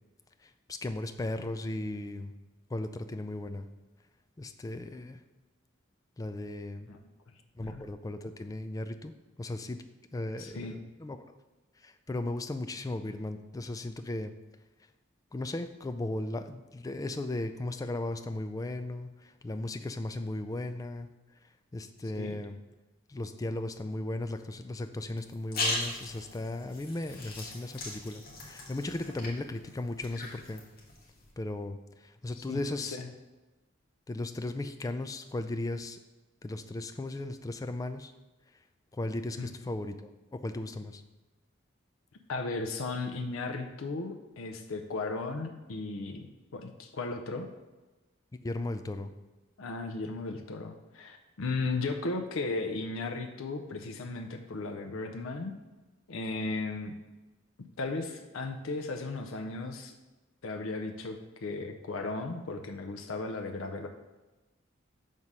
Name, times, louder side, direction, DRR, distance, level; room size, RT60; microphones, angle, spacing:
voice 1, 0.4-2.3 2.7-3.7 4.4-5.2 6.2-6.9 7.5-9.1 9.4-9.8 10.1-11.3 11.8-14.3 15.3-21.1 21.7-22.6 23.1-30.6 31.4-33.0 34.1-36.0 36.4-38.1 38.9-41.0 48.4-49.1, left 2 dB, 15° left, 9 dB, 0.3 m, -36 dB
voice 2, 10.4-10.8 22.2-22.3 32.4-33.1 39.4-39.5 42.3-47.5 49.6-55.5 56.1-56.9 57.8-59.9 60.4-63.9, left 3 dB, 90° left, 4 dB, 0.6 m, -36 dB
sound 1, 25.2-31.3, left 2 dB, 50° left, 1.4 m, -39 dB
6.2 x 3.7 x 5.4 m, 1.1 s
head